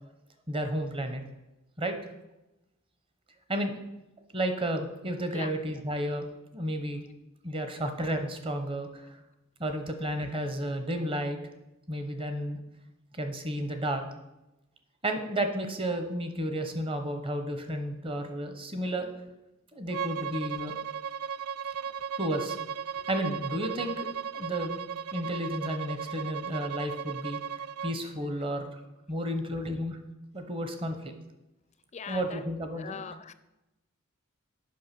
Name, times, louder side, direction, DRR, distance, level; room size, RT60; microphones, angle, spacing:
voice 1, 0.5-1.2 1.8-2.0 3.5-3.8 4.3-6.2 6.5-7.0 7.4-9.1 9.6-11.4 11.9-12.6 13.1-14.0 15.0-19.1 19.7-20.7 22.2-22.6 23.1-24.1 24.3-24.8 25.1-27.4 27.8-28.7 29.1-30.0 30.3-31.1 32.1-33.0, right 1 dB, 25° right, 6 dB, 0.9 m, -32 dB
Bowed string instrument, 19.9-28.0, right 7 dB, 85° right, 0.4 m, -36 dB
voice 2, 31.9-32.4 32.8-33.3, left 6 dB, 35° left, 13 dB, 0.4 m, -40 dB
8.5 x 5.8 x 6.0 m, 0.97 s
head